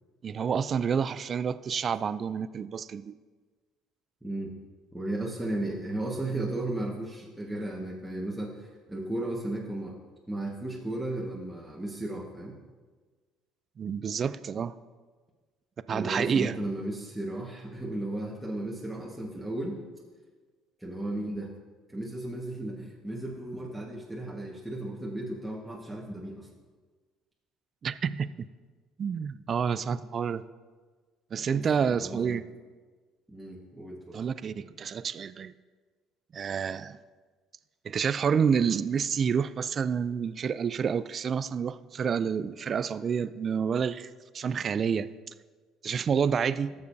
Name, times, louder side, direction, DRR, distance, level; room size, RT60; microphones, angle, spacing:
voice 1, 0.2-3.2 13.8-14.7 15.9-16.6 27.8-28.5 29.0-30.4 31.3-32.4 34.1-35.5 36.3-37.0 37.8-45.1 45.8-46.7, right 7 dB, 45° right, 16 dB, 0.3 m, -29 dB
voice 2, 4.2-4.5 4.9-10.0 10.3-12.6 15.9-19.8 20.8-21.5 21.9-26.5 31.5-32.4 33.3-34.2, right 1 dB, 5° right, -5 dB, 1.5 m, -35 dB
14.0 x 6.8 x 2.7 m, 1.4 s
supercardioid pair, 75°, 0 cm